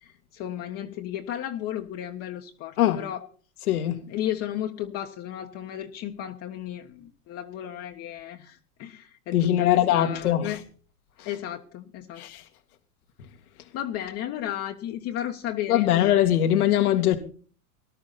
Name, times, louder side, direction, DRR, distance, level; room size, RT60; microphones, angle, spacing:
voice 1, 0.0-3.3 4.1-10.6 11.2-12.2 13.7-15.9, left 11 dB, 35° left, 1.4 m, -34 dB
voice 2, 3.7-4.0 9.3-10.6 11.2-11.3 12.2-12.4 15.7-17.2, left 12 dB, 75° left, 2.3 m, -22 dB
20.0 x 11.5 x 4.2 m
supercardioid pair, 140°, 44 cm